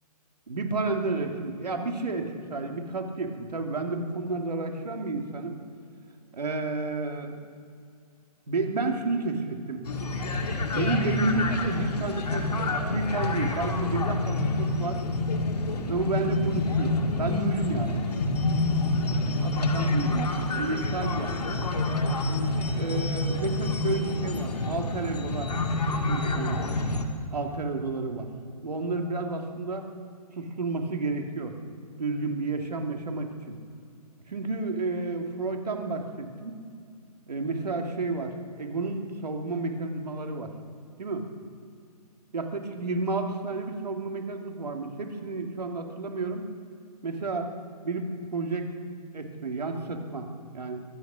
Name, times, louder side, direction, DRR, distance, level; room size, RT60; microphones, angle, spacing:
voice 1, 0.5-5.6 6.3-7.4 8.5-9.8 10.7-12.5 12.9-15.0 15.9-18.2 19.4-20.3 20.6-21.7 22.7-25.5 26.1-26.6 27.3-28.3 28.6-29.8 30.3-31.5 32.0-33.6 34.3-36.6 37.3-40.5 41.0-41.2 42.3-46.5 47.0-47.5 47.8-48.7 49.1-50.3 50.5-50.8, right 3 dB, 80° right, 3 dB, 2.4 m, -31 dB
sound 1, 9.8-27.0, left 2 dB, 80° left, 2.1 m, -28 dB
23.5 x 9.3 x 6.2 m, 2.3 s
hypercardioid pair, 145°, 20 cm